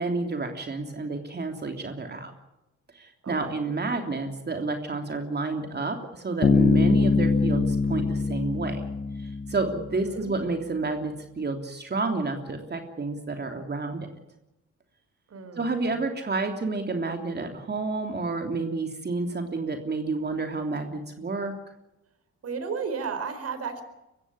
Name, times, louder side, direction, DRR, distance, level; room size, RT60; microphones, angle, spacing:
voice 1, 0.0-2.3 2.9-8.8 9.5-14.1 15.6-21.5, right 3 dB, 35° right, 4 dB, 3.2 m, -30 dB
voice 2, 3.2-3.5 9.9-10.3 15.3-15.9 22.4-23.8, right 5 dB, 55° right, 9 dB, 4.6 m, -34 dB
Bass guitar, 6.4-10.1, left 4 dB, 25° left, 0.7 m, -23 dB
24.0 x 15.0 x 9.7 m, 0.94 s
cardioid pair, 90°, 30 cm